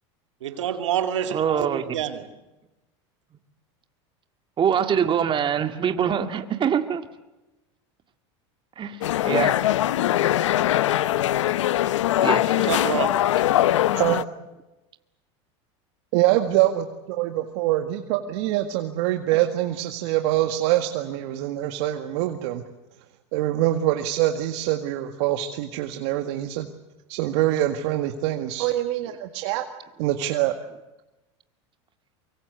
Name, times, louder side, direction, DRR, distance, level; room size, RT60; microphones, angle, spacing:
voice 1, 0.4-2.2 12.5-13.1, right 10 dB, 90° right, 8 dB, 2.5 m, -27 dB
voice 2, 1.3-2.0 4.6-7.0 8.8-9.6 12.2-12.6 19.3-19.4, right 8 dB, 35° right, 8 dB, 2.0 m, -24 dB
sound 1, 9.0-14.2, left 13 dB, 90° left, 0.8 m, -21 dB
voice 3, 13.9-14.3 16.1-22.6 23.3-26.7 27.1-29.7 30.0-30.5, right 14 dB, 70° right, 6 dB, 1.9 m, -24 dB
24.0 x 23.5 x 8.1 m, 1.0 s
supercardioid pair, 105°, 15 cm